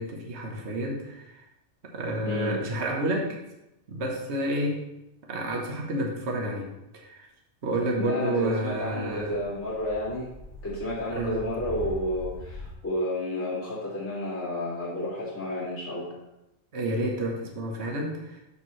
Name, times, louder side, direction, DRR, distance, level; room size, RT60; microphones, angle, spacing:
voice 1, 0.0-1.5 1.9-3.4 3.9-4.8 5.3-7.3 7.6-9.4 11.1-11.5 16.7-18.4, right 1 dB, 55° right, 0 dB, 1.5 m, -30 dB
voice 2, 2.2-2.6 7.9-10.3 10.6-16.1, left 1 dB, 80° left, -9 dB, 3.3 m, -31 dB
sound 1, 8.4-12.7, left 1 dB, 85° right, 1.9 m, -42 dB
12.5 x 4.5 x 3.2 m, 0.89 s
omnidirectional pair, 1.4 m